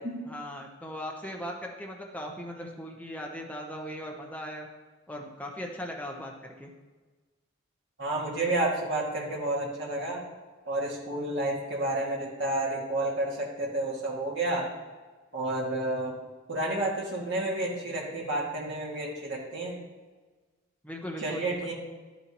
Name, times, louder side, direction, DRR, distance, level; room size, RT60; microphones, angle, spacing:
voice 1, 0.3-4.7 5.1-6.7 20.8-21.7, equal, 5° left, 0 dB, 0.8 m, -39 dB
voice 2, 8.0-10.2 10.7-14.7 15.3-16.1 16.5-19.8 21.2-21.7, right 2 dB, 55° right, -3 dB, 2.1 m, -30 dB
11.5 x 6.9 x 3.0 m, 1.3 s
head